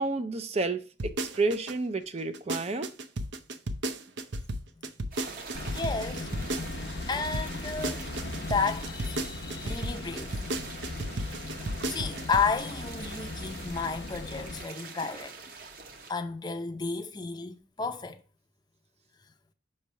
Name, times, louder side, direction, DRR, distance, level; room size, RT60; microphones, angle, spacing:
voice 1, 0.0-2.9, right 3 dB, 35° right, 0.4 m, -30 dB
sound 1, 1.0-1.7 2.2-7.1 7.3-12.5 12.8-12.9, right 1 dB, 75° right, 0.7 m, -33 dB
sound 2, 5.1-16.1, right 4 dB, 50° right, 1.0 m, -45 dB
sound 3, 5.5-14.6, left 2 dB, 60° left, 0.7 m, -39 dB
voice 2, 5.7-6.3 7.1-8.0 8.4-10.3 11.9-15.3 16.1-18.2, left 5 dB, 20° left, 0.6 m, -32 dB
6.0 x 3.2 x 5.5 m
head